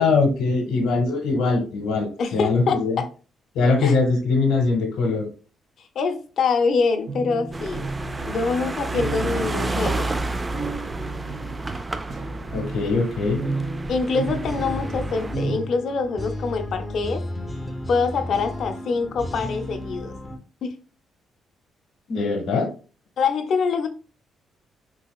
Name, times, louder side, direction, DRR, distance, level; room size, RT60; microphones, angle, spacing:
voice 1, 0.0-3.0 3.5-5.3 12.5-13.4 22.1-22.7, left 3 dB, 85° left, 0.9 m, -22 dB
voice 2, 2.2-3.1 3.8-3.9 5.8-7.8 8.3-10.1 13.9-17.2 17.9-20.1 20.6-20.7 23.2-23.9, left 4 dB, 65° left, 0.6 m, -25 dB
sound 1, 7.1-15.6, right 3 dB, 45° right, 0.8 m, -33 dB
sound 2, 7.5-15.4, right 2 dB, 20° right, 0.3 m, -30 dB
sound 3, 14.0-20.4, left 1 dB, 15° left, 0.6 m, -33 dB
4.0 x 2.7 x 2.3 m
cardioid pair, 90°, 0 cm